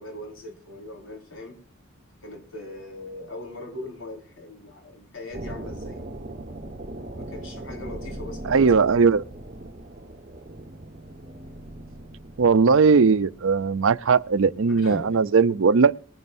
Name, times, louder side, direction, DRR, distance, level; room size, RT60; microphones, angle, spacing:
voice 1, 0.0-1.6 2.2-6.0 7.1-9.1 14.7-15.2, left 2 dB, 70° left, 4.8 m, -40 dB
sound 1, 5.3-15.2, right 1 dB, 35° right, 1.4 m, -40 dB
voice 2, 8.5-9.2 12.4-15.9, right 5 dB, 75° right, 0.5 m, -18 dB
21.0 x 11.0 x 2.6 m
head